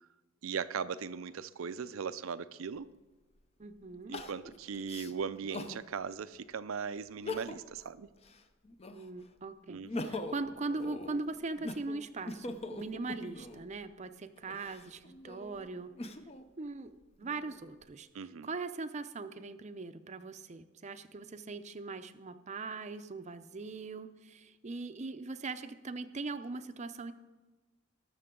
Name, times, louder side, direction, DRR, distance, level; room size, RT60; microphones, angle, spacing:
voice 1, 0.4-2.9 4.1-8.1 9.7-9.9 18.1-18.5, right 6 dB, 85° right, 14 dB, 0.5 m, -38 dB
Crying sobbing, 2.8-2.9 4.1-5.8 6.3-6.4 7.1-7.8 8.2-9.2 9.7-13.7 14.4-16.4 17.0-17.8, left 2 dB, 30° left, 0.6 m, -42 dB
voice 2, 3.6-4.2 8.9-15.9 16.6-18.1 18.4-27.1, right 3 dB, 35° right, 11 dB, 0.5 m, -40 dB
20.0 x 6.7 x 3.7 m, 1.2 s
head